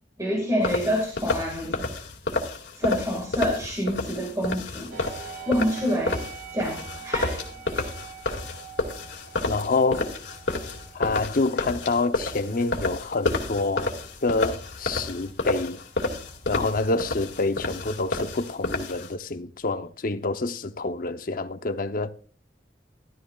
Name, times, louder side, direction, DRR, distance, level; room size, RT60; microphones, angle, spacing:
voice 1, 0.2-1.9 2.7-5.0 5.5-6.3 6.5-7.9, equal, 20° right, 1.9 m, -27 dB
sound 1, 0.6-19.1, left 2 dB, 85° left, 2.1 m, -30 dB
sound 2, 4.9-18.5, right 6 dB, 85° right, 2.4 m, -46 dB
voice 2, 9.5-10.1 10.9-13.9 14.2-15.8 16.5-22.1, left 3 dB, 50° left, 0.7 m, -27 dB
13.0 x 12.5 x 2.4 m
head